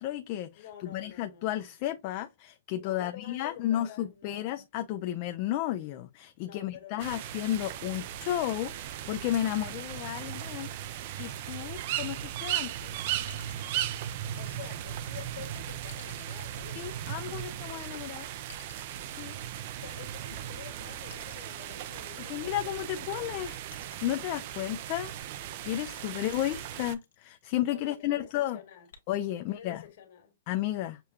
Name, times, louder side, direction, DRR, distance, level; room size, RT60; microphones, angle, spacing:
voice 1, 0.0-10.7 11.2-13.0 16.8-18.3 19.1-19.4 22.3-23.6 24.0-25.1 25.6-28.6 29.1-29.8 30.5-31.0, left 13 dB, 40° left, 0.4 m, -33 dB
voice 2, 0.5-1.6 2.7-4.5 6.4-7.2 14.4-16.9 19.7-22.7 27.6-28.9 29.3-30.4, left 9 dB, 55° left, 1.7 m, -49 dB
sound 1, 7.0-26.9, right 11 dB, 50° right, 0.5 m, -37 dB
sound 2, 11.1-12.5 13.3-15.1 15.9-17.6 18.5-20.2 21.1-22.7 23.7-25.2 26.3-27.8 28.9-29.0, left 6 dB, 75° left, 1.3 m, -55 dB
6.6 x 2.3 x 2.8 m
hypercardioid pair, 140°, 0 cm